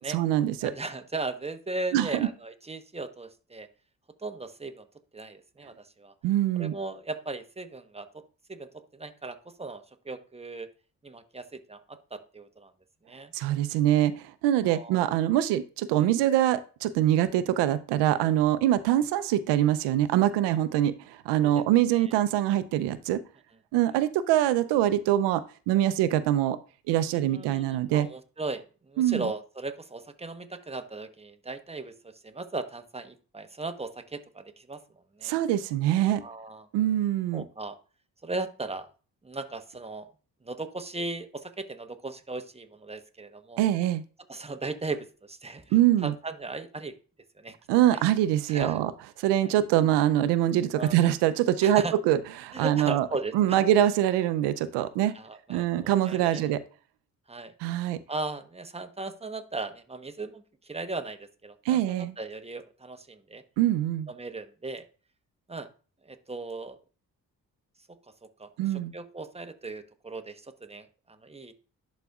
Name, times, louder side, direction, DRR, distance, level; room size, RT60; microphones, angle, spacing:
voice 1, 0.1-0.7 1.9-2.3 6.2-6.7 13.3-23.2 23.7-26.6 26.9-28.1 29.0-29.3 35.2-36.2 36.7-37.4 43.6-44.0 45.7-46.1 47.7-48.9 49.2-53.1 53.3-55.1 55.5-56.6 57.6-58.0 61.7-62.1 63.6-64.1 68.6-68.9, right 12 dB, 85° right, 14 dB, 0.6 m, -24 dB
voice 2, 0.6-3.7 4.2-4.8 5.1-6.1 6.5-8.2 8.5-10.7 11.0-12.7 13.1-13.3 14.7-15.2 16.0-16.1 21.9-22.0 27.1-34.8 35.2-35.4 36.2-36.7 37.3-37.8 38.2-38.9 39.2-40.1 40.4-43.6 44.3-45.7 46.0-46.9 47.4-47.5 47.9-48.0 48.5-48.8 49.4-49.5 50.8-51.0 51.6-52.0 52.5-53.6 55.1-56.5 57.3-57.5 58.1-63.4 64.1-64.8 65.5-65.7 66.0-66.8 68.4-71.5, right 3 dB, 15° right, 8 dB, 1.0 m, -37 dB
11.5 x 4.1 x 2.4 m, 0.36 s
hypercardioid pair, 45°, 41 cm